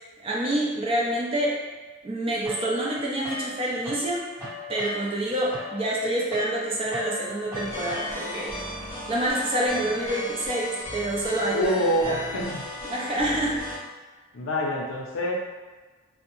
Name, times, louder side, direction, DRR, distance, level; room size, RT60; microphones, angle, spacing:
voice 1, 0.2-1.6 2.0-4.3 4.7-8.5 9.1-11.7 12.1-12.4 12.9-13.6, right 1 dB, 25° right, -4 dB, 0.4 m, -27 dB
sound 1, 2.4-4.1 4.4-8.5, left 1 dB, 10° right, 1.5 m, -37 dB
Wind instrument woodwind instrument, 6.6-10.2, right 1 dB, 65° right, 0.7 m, -45 dB
sound 2, 7.5-13.8, left 1 dB, 15° left, 1.0 m, -36 dB
voice 2, 11.5-12.7 14.3-15.3, equal, 75° left, -1 dB, 0.5 m, -26 dB
2.6 x 2.1 x 3.0 m, 1.3 s
head